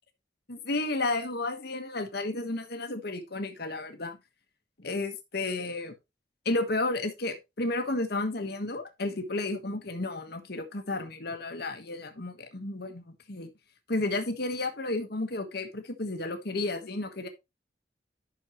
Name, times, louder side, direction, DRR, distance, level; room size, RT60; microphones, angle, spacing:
voice 1, 0.5-4.2 4.8-5.9 6.4-13.5 13.9-17.3, left 2 dB, 60° left, 1.5 m, -32 dB
10.5 x 6.5 x 3.1 m
head